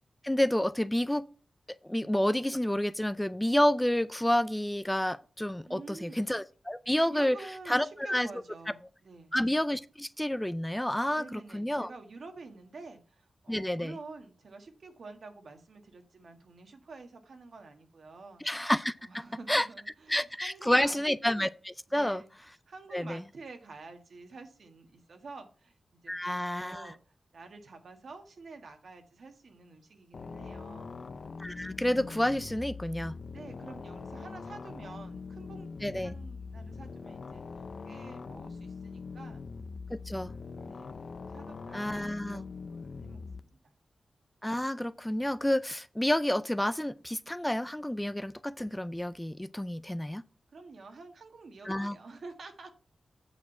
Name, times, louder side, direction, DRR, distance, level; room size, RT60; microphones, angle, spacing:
voice 1, 0.2-1.2 1.9-7.4 7.7-8.3 9.3-11.9 13.5-13.9 18.4-19.7 20.1-22.2 22.9-23.2 26.1-26.9 31.4-33.1 35.8-36.1 39.9-40.3 41.7-42.4 44.4-50.2 51.7-52.0, left 1 dB, 10° left, 0.4 m, -29 dB
voice 2, 5.7-6.3 7.1-9.4 11.1-18.4 19.0-21.0 21.9-22.3 22.7-27.0 27.3-31.0 33.3-37.4 37.8-39.4 40.2-43.7 50.5-52.7, right 3 dB, 75° right, 1.6 m, -49 dB
sound 1, 30.1-43.4, left 4 dB, 65° left, 0.6 m, -43 dB
8.5 x 4.9 x 5.7 m
wide cardioid pair, 125°, 0 cm